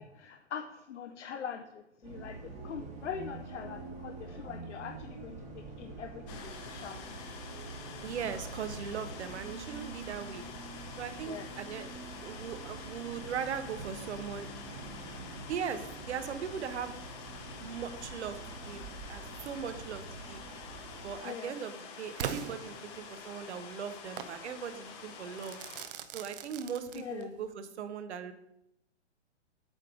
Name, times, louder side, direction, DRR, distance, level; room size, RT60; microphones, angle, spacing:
voice 1, 0.0-7.4 11.3-11.5 21.2-21.6 22.8-22.9 26.9-27.3, left 7 dB, 75° left, 5 dB, 0.7 m, -43 dB
Bus, 2.0-21.1, right 3 dB, 20° right, 1.3 m, -46 dB
sound 1, 6.3-25.9, left 6 dB, 20° left, 0.7 m, -48 dB
voice 2, 8.0-10.4 11.0-14.5 15.5-17.0 17.6-18.8 19.1-20.4 21.0-25.6 26.1-28.3, right 7 dB, 65° right, 10 dB, 1.0 m, -39 dB
Crackle / Fireworks, 22.2-23.3 24.2-24.4 25.4-27.4, right 8 dB, 50° right, 0.6 m, -40 dB
8.9 x 3.3 x 6.2 m, 0.81 s
hypercardioid pair, 145°, 36 cm